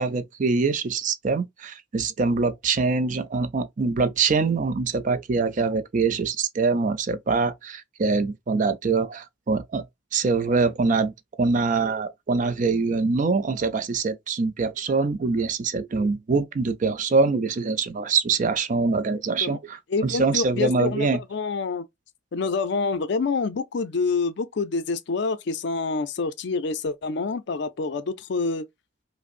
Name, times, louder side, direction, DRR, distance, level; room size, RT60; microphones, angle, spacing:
voice 1, 0.0-9.9 10.1-21.2, right 4 dB, 40° right, 0.4 m, -24 dB
voice 2, 19.9-21.8 22.3-28.6, left 4 dB, 60° left, 0.4 m, -27 dB
5.0 x 2.0 x 2.4 m
head